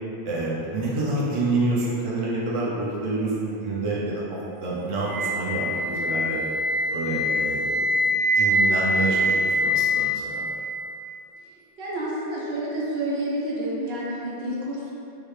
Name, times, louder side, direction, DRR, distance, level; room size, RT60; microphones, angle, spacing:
voice 1, 0.2-4.2 4.6-6.4 6.9-10.5, right 2 dB, 40° right, -6 dB, 0.6 m, -28 dB
Wind instrument woodwind instrument, 5.0-11.0, left 1 dB, 10° right, 0.8 m, -24 dB
voice 2, 11.8-14.9, right 1 dB, 70° right, -6 dB, 1.0 m, -29 dB
4.7 x 2.2 x 3.2 m, 2.7 s
omnidirectional pair, 1.1 m